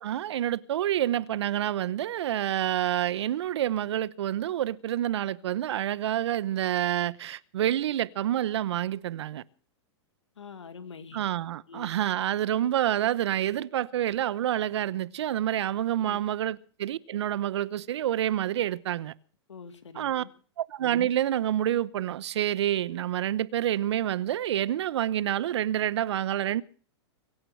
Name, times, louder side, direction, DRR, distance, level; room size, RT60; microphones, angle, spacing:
voice 1, 0.0-9.4 11.1-19.1 19.9-20.2 20.6-26.6, right 12 dB, 70° right, 0.9 m, -28 dB
voice 2, 10.4-11.3 11.7-12.0 16.0-16.3 19.5-20.3, left 6 dB, 90° left, 2.2 m, -45 dB
23.5 x 9.0 x 6.4 m
hypercardioid pair, 115°, 15 cm